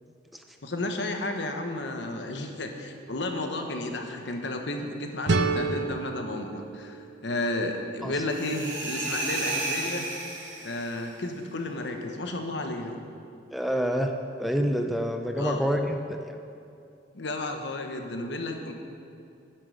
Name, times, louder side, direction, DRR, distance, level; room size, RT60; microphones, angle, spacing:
voice 1, 0.6-10.1 10.6-13.0 15.4-15.6 17.1-18.7, left 2 dB, 65° left, 4 dB, 1.1 m, -32 dB
sound 1, 5.3-8.1, right 3 dB, 70° right, 0.6 m, -30 dB
sound 2, 8.3-11.0, right 2 dB, 90° right, 2.4 m, -32 dB
voice 2, 13.5-14.1 14.4-16.0 16.3-16.4, equal, ahead, 3 dB, 0.5 m, -27 dB
10.5 x 7.5 x 6.5 m, 2.5 s
head